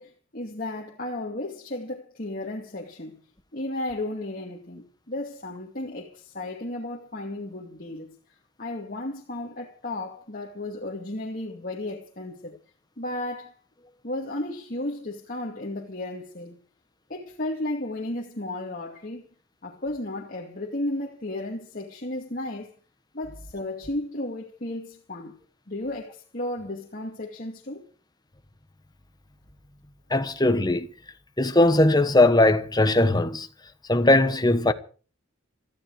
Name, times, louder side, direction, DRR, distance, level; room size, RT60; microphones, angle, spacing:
voice 1, 0.0-3.2 3.5-8.1 8.6-12.6 13.0-13.5 14.0-16.6 17.1-19.3 19.6-22.7 23.1-25.3 25.7-27.9, left 1 dB, 45° left, 2.4 m, -34 dB
voice 2, 30.1-30.9 31.4-33.5 33.9-34.7, left 2 dB, 20° left, 1.2 m, -19 dB
18.5 x 14.5 x 4.9 m
head